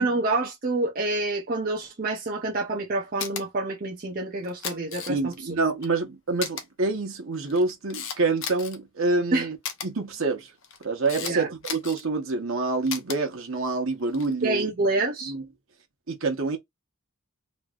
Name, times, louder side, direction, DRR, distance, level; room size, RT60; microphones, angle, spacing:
voice 1, 0.0-5.5 9.3-9.5 11.2-11.5 14.4-15.3, right 2 dB, 40° right, 0.6 m, -27 dB
Camera, 3.2-3.4 4.4-5.4 5.8-5.9 6.4-6.6 7.3-8.8 9.6-9.9 10.6-11.3 11.6-12.0 12.9-13.2 14.0-14.3, left 7 dB, 65° left, 0.8 m, -34 dB
voice 2, 5.1-9.6 9.8-10.5 10.8-14.7 15.3-15.4 16.1-16.6, right 3 dB, 65° right, 1.1 m, -27 dB
3.1 x 2.6 x 2.4 m
head